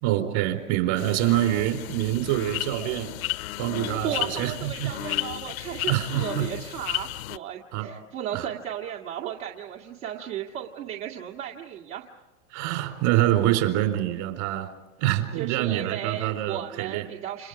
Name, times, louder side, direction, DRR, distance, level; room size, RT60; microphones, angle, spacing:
voice 1, 0.0-3.1 3.6-4.9 5.9-6.5 7.7-7.9 8.3-8.5 12.5-14.7 15.0-17.1, right 14 dB, 55° right, 6 dB, 4.2 m, -25 dB
sound 1, 1.0-7.4, left 16 dB, 75° left, 0.7 m, -33 dB
voice 2, 3.8-12.1 15.4-17.5, right 10 dB, 75° right, 0 dB, 2.2 m, -35 dB
30.0 x 28.0 x 4.9 m, 1.1 s
hypercardioid pair, 125°, 42 cm